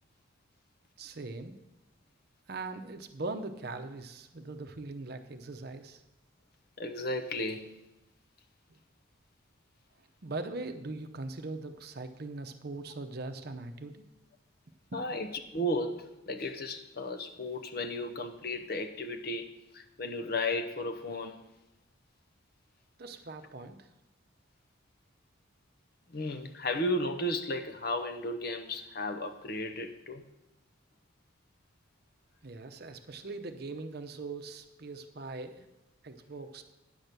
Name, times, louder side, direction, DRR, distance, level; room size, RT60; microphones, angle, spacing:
voice 1, 1.0-1.6 2.5-6.0 10.2-14.1 23.0-23.9 32.4-35.6 36.0-36.6, right 3 dB, 50° right, 8 dB, 0.7 m, -41 dB
voice 2, 6.8-7.7 14.9-21.4 26.1-30.2, left 1 dB, 50° left, 7 dB, 0.7 m, -34 dB
9.9 x 6.1 x 6.7 m, 0.93 s
head